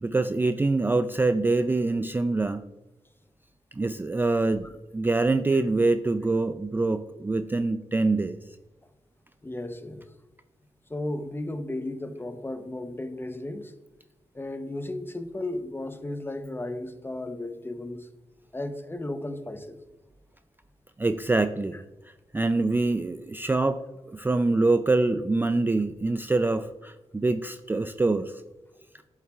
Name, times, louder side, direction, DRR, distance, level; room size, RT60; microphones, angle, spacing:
voice 1, 0.0-2.6 3.8-4.7 4.9-8.4 21.0-21.8 22.3-23.8 24.1-28.4, right 3 dB, 15° right, 10 dB, 0.3 m, -25 dB
voice 2, 9.4-10.0 10.9-13.7 14.3-18.1 18.5-19.8, left 1 dB, 20° left, 9 dB, 0.8 m, -34 dB
8.0 x 7.3 x 2.4 m, 1.1 s
cardioid pair, 75°, 12 cm